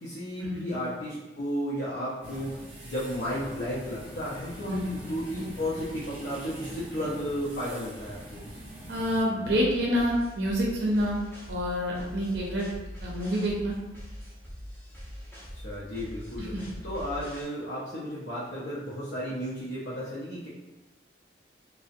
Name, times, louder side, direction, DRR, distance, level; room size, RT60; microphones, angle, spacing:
voice 1, 0.0-8.4 15.5-16.5 16.8-20.5, equal, 75° left, -8 dB, 0.6 m, -33 dB
sound 1, 2.2-9.2, right 1 dB, 30° right, 0.8 m, -44 dB
voice 2, 4.7-5.0 8.9-12.7 13.0-13.8 16.4-16.5, equal, 65° right, -3 dB, 0.5 m, -27 dB
sound 2, 9.4-17.4, equal, 15° left, 0.5 m, -42 dB
2.5 x 2.0 x 2.5 m, 1.1 s
head